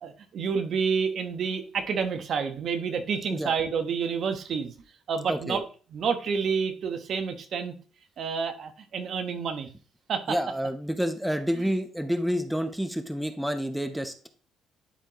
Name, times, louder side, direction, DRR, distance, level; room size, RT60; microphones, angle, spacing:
voice 1, 0.0-4.7 5.1-5.6 5.9-7.7 8.2-9.7 10.1-10.4, right 6 dB, 60° right, 7 dB, 1.2 m, -29 dB
voice 2, 5.3-5.6 10.3-14.3, equal, 5° right, 8 dB, 1.0 m, -29 dB
11.5 x 4.3 x 3.1 m, 0.38 s
supercardioid pair, 75°, 0 cm